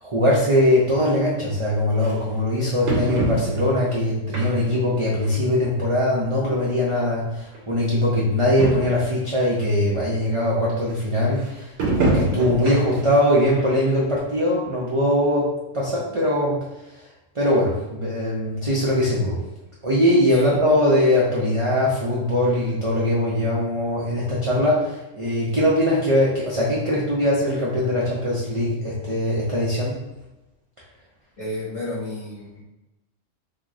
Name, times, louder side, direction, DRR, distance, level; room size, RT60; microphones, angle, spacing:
voice 1, 0.0-11.7 12.1-15.5 15.7-16.6 17.3-19.4 19.8-29.9, left 1 dB, 45° right, -6 dB, 0.4 m, -21 dB
sound 1, 1.0-1.1 2.0-2.1 2.9-3.8 4.3-4.8 5.2-5.4 6.3-6.4 6.6-6.7 7.5-7.6 8.0-8.1 8.3-8.4 8.6-9.0 9.6-9.7 11.8-13.1 13.5-13.7 14.2-14.3, right 2 dB, 80° right, 1.1 m, -24 dB
voice 2, 20.3-20.6 31.4-32.6, left 1 dB, 35° left, -6 dB, 0.8 m, -32 dB
3.0 x 2.0 x 3.6 m, 0.99 s
omnidirectional pair, 1.4 m